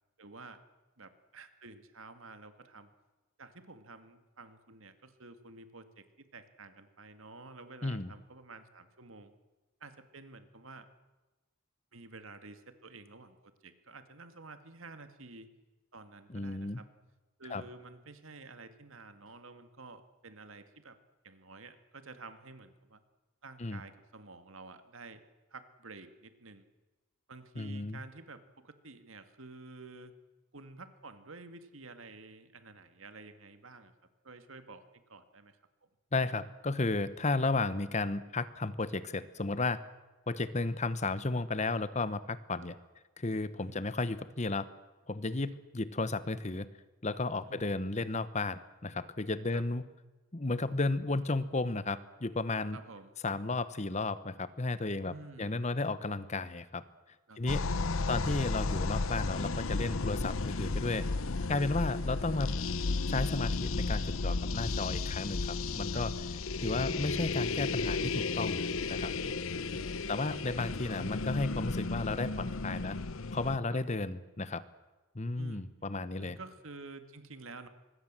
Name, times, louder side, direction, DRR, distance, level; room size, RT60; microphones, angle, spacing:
voice 1, 0.2-0.6 1.0-2.9 3.4-9.3 9.8-10.9 11.9-15.5 15.9-16.9 17.4-21.0 21.2-23.0 23.4-25.2 25.5-26.7 27.3-30.1 30.5-33.9 34.2-35.9 43.6-43.8 45.5-45.6 47.5-47.8 49.5-49.6 52.7-53.2 55.0-55.6 57.3-58.3 61.4-61.6 64.6-65.0 65.9-66.3 69.1-70.6 73.7-73.8 75.4-75.7 76.2-77.7, right 3 dB, 70° right, 9 dB, 2.1 m, -51 dB
voice 2, 7.8-8.1 16.3-16.8 17.5-17.6 23.6-23.8 27.6-28.0 36.1-39.8 40.3-42.7 43.2-44.7 45.1-46.7 47.0-49.8 50.3-52.8 53.2-56.8 57.4-57.7 58.1-61.1 61.5-62.5 63.1-66.1 66.6-69.1 70.1-73.0 73.3-74.6 75.1-76.4, left 3 dB, 35° left, 15 dB, 1.0 m, -33 dB
sound 1, 57.5-73.6, left 3 dB, 70° left, 0.8 m, -33 dB
25.0 x 21.0 x 7.6 m, 1.2 s
head